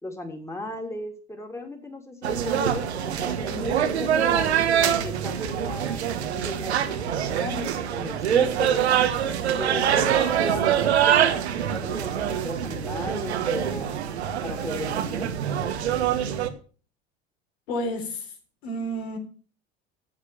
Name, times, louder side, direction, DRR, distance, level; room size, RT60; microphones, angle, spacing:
voice 1, 0.0-4.5 5.0-8.9 9.4-13.9 14.4-15.3, left 2 dB, 10° left, 3.2 m, -36 dB
sound 1, 2.2-16.5, right 9 dB, 75° right, 1.4 m, -24 dB
voice 2, 17.7-18.3 18.6-19.2, equal, 70° left, 3.9 m, -30 dB
12.5 x 8.2 x 7.1 m
figure-of-eight pair, 70°, 33 cm